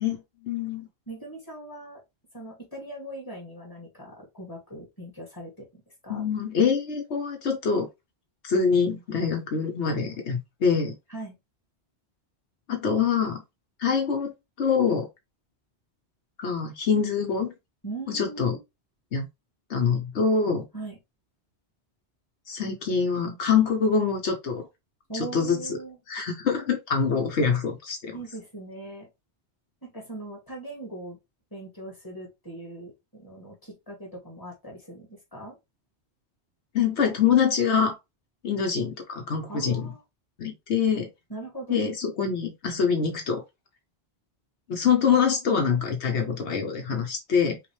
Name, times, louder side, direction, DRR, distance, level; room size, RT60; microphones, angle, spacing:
voice 1, 0.0-0.9 6.1-7.9 8.4-10.9 12.7-13.4 13.8-15.1 16.4-17.5 18.1-18.6 19.1-19.2 19.7-20.7 22.5-24.6 25.3-25.6 26.1-28.2 36.7-38.0 38.4-39.9 40.4-41.1 41.7-43.4 44.7-47.6, left 6 dB, 80° left, 1.3 m, -25 dB
voice 2, 1.1-2.0 2.3-6.2 11.1-11.4 17.8-18.6 20.7-21.0 25.1-26.0 28.1-29.1 29.8-31.2 31.5-35.6 39.5-40.0 41.3-41.8, right 2 dB, 20° left, 2.3 m, -40 dB
5.8 x 2.5 x 3.1 m
omnidirectional pair, 1.1 m